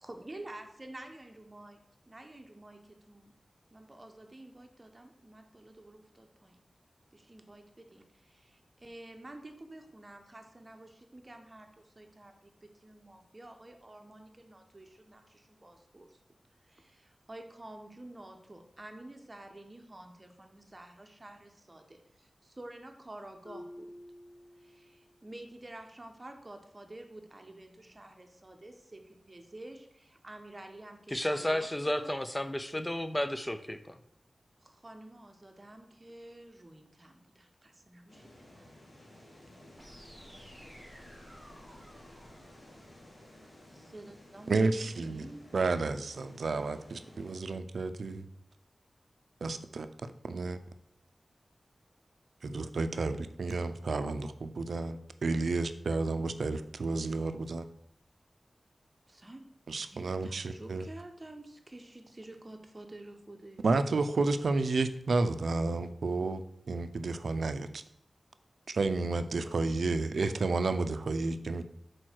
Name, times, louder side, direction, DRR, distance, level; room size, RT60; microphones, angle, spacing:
voice 1, 0.0-3.3 3.7-6.6 7.1-16.2 16.6-23.9 24.6-32.2 34.6-38.6 43.7-45.5 59.1-59.4 59.8-63.6, right 1 dB, 30° right, 4 dB, 0.9 m, -50 dB
Marimba xylophone, 23.4-25.2, left 1 dB, 75° left, 0.9 m, -50 dB
voice 2, 31.1-34.0, left 1 dB, 15° left, 10 dB, 0.5 m, -32 dB
sound 1, 38.1-47.4, left 1 dB, 55° left, 2.4 m, -55 dB
sound 2, 39.7-43.7, equal, 10° right, 2.4 m, -55 dB
voice 3, 44.5-45.3 45.5-48.2 49.4-49.9 50.2-50.6 52.4-57.7 59.7-60.8 63.6-66.4 66.7-67.8 68.7-71.6, right 3 dB, 90° right, 10 dB, 0.4 m, -31 dB
6.2 x 4.6 x 4.5 m, 0.72 s
wide cardioid pair, 80°, 0 cm